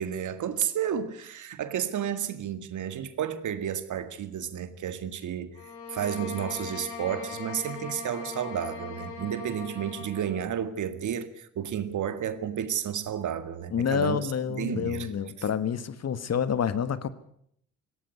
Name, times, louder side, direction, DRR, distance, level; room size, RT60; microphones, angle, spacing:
voice 1, 0.0-5.6 5.9-15.1, right 9 dB, 60° right, 2.0 m, -32 dB
sound 1, 5.5-10.4, left 5 dB, 85° left, 3.9 m, -39 dB
voice 2, 13.7-17.1, left 7 dB, 50° left, 1.5 m, -28 dB
18.0 x 16.5 x 9.5 m
hypercardioid pair, 50°, 34 cm